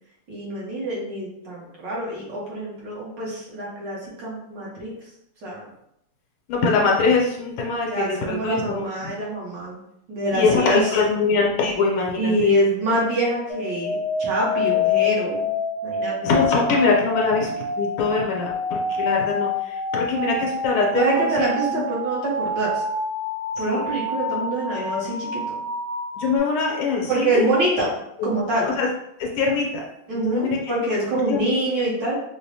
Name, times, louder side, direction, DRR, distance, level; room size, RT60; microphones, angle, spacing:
voice 1, 0.3-4.9 5.4-5.6 7.9-9.8 10.1-11.0 12.2-15.5 15.8-16.2 20.9-22.8 23.6-25.6 27.1-28.0 28.2-28.8 30.1-32.1, right 1 dB, 60° right, -5 dB, 1.5 m, -25 dB
voice 2, 6.5-9.1 10.3-12.5 16.2-21.8 23.7-23.8 26.1-27.5 28.2-28.4 28.6-28.9 29.2-29.8 30.1-30.7 31.3-31.5, left 4 dB, 75° left, -1 dB, 1.5 m, -23 dB
sound 1, 13.5-26.4, left 3 dB, 50° left, 0.8 m, -27 dB
4.7 x 2.1 x 2.7 m, 0.78 s
omnidirectional pair, 2.4 m